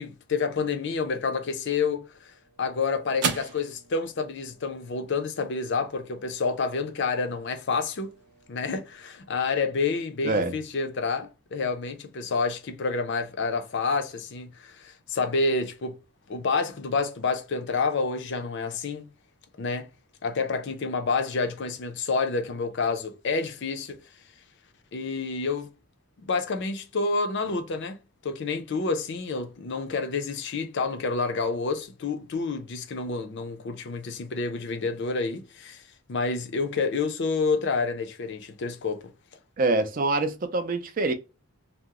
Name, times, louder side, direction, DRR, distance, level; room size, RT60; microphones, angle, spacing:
voice 1, 0.0-2.3 2.6-8.1 8.5-16.0 16.3-19.1 19.6-19.9 20.2-24.0 24.9-25.7 26.3-28.0 28.2-35.8 36.1-39.0, left 4 dB, 50° left, 0.5 m, -28 dB
sound 1, 1.9-10.5, right 5 dB, 90° right, 0.6 m, -40 dB
voice 2, 39.6-41.1, right 2 dB, 40° right, 0.4 m, -25 dB
2.8 x 2.0 x 3.5 m
head